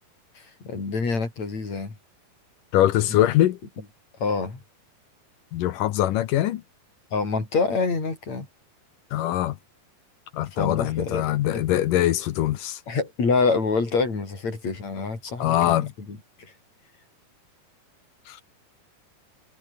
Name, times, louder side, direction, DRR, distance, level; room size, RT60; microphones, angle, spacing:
voice 1, 0.4-2.0 3.1-3.2 4.2-4.6 7.1-8.5 10.5-11.2 11.5-11.8 12.9-16.5, left 4 dB, 40° left, 7.4 m, -27 dB
voice 2, 2.7-3.6 5.5-6.6 9.1-9.6 10.3-12.8 15.4-15.9 18.3-18.4, left 13 dB, 70° left, 2.3 m, -22 dB
omnidirectional pair, 4.6 m